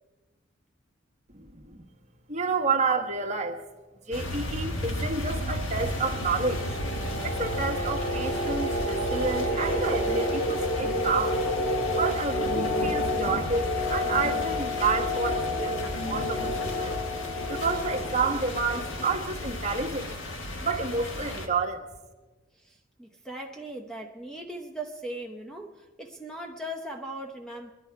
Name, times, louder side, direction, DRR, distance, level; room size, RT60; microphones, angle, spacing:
voice 1, 1.3-1.8 2.3-3.6 4.1-6.8 7.2-11.4 11.9-13.6 13.9-17.0 17.5-20.1 20.6-21.8, right 4 dB, 35° right, 2 dB, 1.5 m, -29 dB
sound 1, 4.1-21.5, left 1 dB, 75° left, 1.8 m, -34 dB
sound 2, 5.1-19.6, left 1 dB, 40° left, 1.8 m, -30 dB
voice 2, 22.5-27.7, right 1 dB, 5° left, 3 dB, 0.8 m, -39 dB
22.5 x 11.0 x 4.7 m, 1.2 s
head